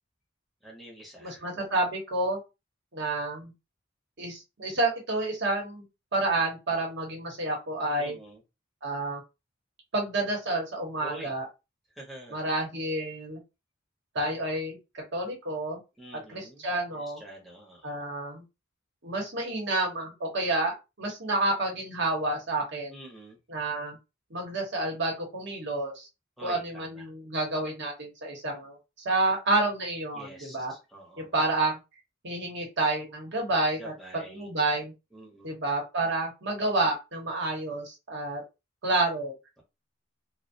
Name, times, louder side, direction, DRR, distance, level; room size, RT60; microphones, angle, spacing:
voice 1, 0.6-1.5 8.0-8.4 11.0-11.4 12.0-12.4 16.0-16.6 17.0-18.1 22.9-23.4 26.4-27.1 30.1-31.3 33.8-34.5 35.1-35.5, right 1 dB, ahead, -3 dB, 0.7 m, -46 dB
voice 2, 1.2-2.4 2.9-3.5 4.2-5.8 6.1-8.2 8.8-9.2 9.9-11.5 12.3-13.4 14.1-15.8 16.3-17.2 17.8-18.4 19.0-23.0 23.5-24.0 24.3-26.1 26.4-28.8 29.0-30.7 31.2-31.8 32.2-33.9 34.3-34.9 35.4-38.4 38.8-39.3, right 2 dB, 60° right, 0 dB, 0.9 m, -29 dB
2.3 x 2.1 x 2.6 m, 0.26 s
head